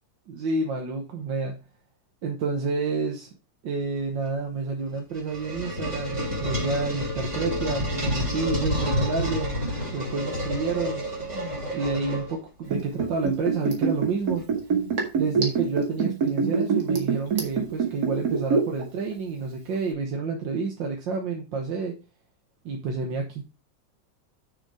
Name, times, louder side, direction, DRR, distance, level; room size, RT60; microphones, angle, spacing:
voice 1, 0.3-1.6 2.2-3.3 3.6-9.6 9.9-11.0 11.3-14.4 15.2-22.0 22.7-23.4, right 4 dB, 85° right, 1 dB, 1.9 m, -29 dB
sound 1, 4.9-12.7, equal, 20° right, 3.3 m, -29 dB
Liquid, 12.7-18.8 19.1-19.2, right 5 dB, 60° right, 2.4 m, -24 dB
6.5 x 5.9 x 4.8 m, 0.31 s
omnidirectional pair, 1.9 m